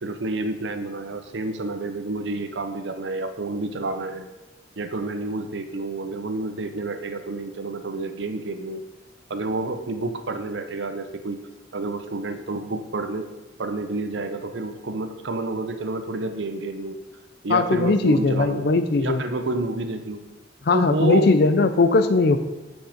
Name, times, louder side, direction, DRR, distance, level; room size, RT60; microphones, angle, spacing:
voice 1, 0.0-4.3 4.8-8.8 9.3-11.4 11.7-13.3 13.6-17.0 17.4-18.7 19.0-20.2 20.7-21.4, right 2 dB, 70° right, 8 dB, 0.7 m, -29 dB
voice 2, 17.5-19.2 20.6-22.4, left 3 dB, 55° left, 10 dB, 0.5 m, -19 dB
8.8 x 5.4 x 5.1 m, 1.1 s
head